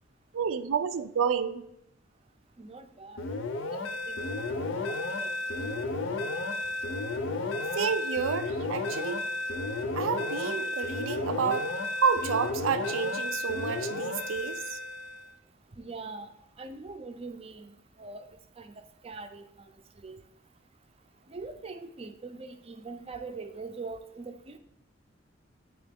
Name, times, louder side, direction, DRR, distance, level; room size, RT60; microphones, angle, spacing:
voice 1, 0.3-1.6 7.7-9.2 9.9-11.7 12.0-14.8, right 6 dB, 90° right, 0.4 m, -30 dB
voice 2, 2.6-3.2 3.7-4.2 4.5-4.7 5.2-5.3 5.6-5.8 15.7-16.3 16.6-17.7 18.0-18.2 18.6-18.7 19.0-19.5 20.0-20.2 21.3-24.6, right 3 dB, 30° right, 0.4 m, -42 dB
sound 1, 3.2-15.3, left 2 dB, 80° left, 0.6 m, -33 dB
9.0 x 3.0 x 3.5 m
head